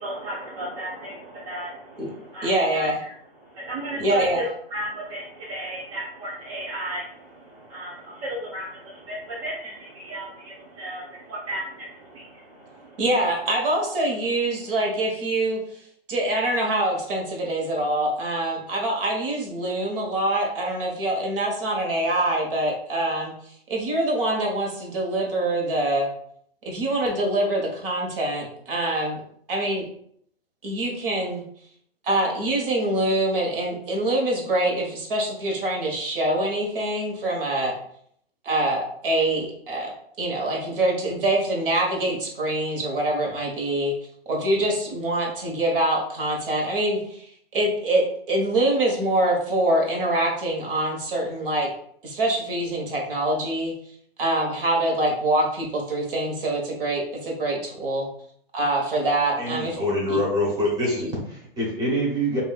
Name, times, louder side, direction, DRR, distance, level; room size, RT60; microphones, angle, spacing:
voice 1, 0.0-3.1 3.4-13.0, right 1 dB, 35° right, -5 dB, 0.8 m, -35 dB
voice 2, 2.4-3.0 4.0-4.4 13.0-15.6 16.1-23.3 23.7-26.1 26.6-29.2 29.5-29.9 30.6-31.4 32.0-37.8 38.4-39.9 40.2-43.9 44.3-47.3 47.5-51.7 52.0-53.7 54.2-58.1 58.5-59.8 60.1-60.2 61.0-61.1, right 1 dB, 65° right, 0 dB, 1.3 m, -24 dB
voice 3, 59.4-61.0 61.3-62.4, equal, 15° right, -5 dB, 1.1 m, -25 dB
5.0 x 2.7 x 2.4 m, 0.66 s
hypercardioid pair, 145°, 30 cm